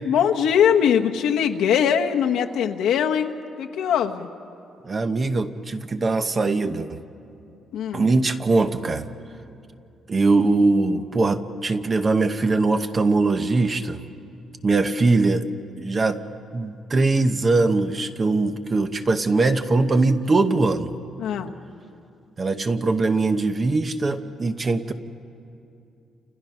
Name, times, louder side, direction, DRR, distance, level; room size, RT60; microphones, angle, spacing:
voice 1, 0.0-4.3 7.7-8.1 21.2-21.5, left 8 dB, 85° left, 4 dB, 1.3 m, -21 dB
voice 2, 4.8-6.9 7.9-9.1 10.1-14.0 14.6-15.5 15.8-16.2 16.5-20.9 22.4-24.9, right 3 dB, 25° right, 9 dB, 0.9 m, -21 dB
30.0 x 28.5 x 5.8 m, 2.6 s
cardioid pair, 170°, 0 cm